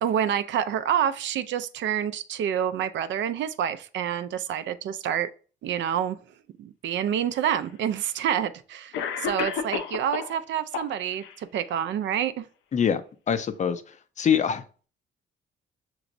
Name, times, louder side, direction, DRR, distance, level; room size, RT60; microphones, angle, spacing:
voice 1, 0.0-5.3 5.6-6.2 6.6-12.5, right 9 dB, 70° right, 0.4 m, -28 dB
Cough, 7.2-7.3 8.3-8.4 8.9-10.4 10.7-11.4, left 7 dB, 85° left, 0.6 m, -31 dB
voice 2, 12.7-14.6, left 8 dB, 40° left, 0.4 m, -25 dB
5.8 x 3.1 x 2.5 m
cardioid pair, 90°, 20 cm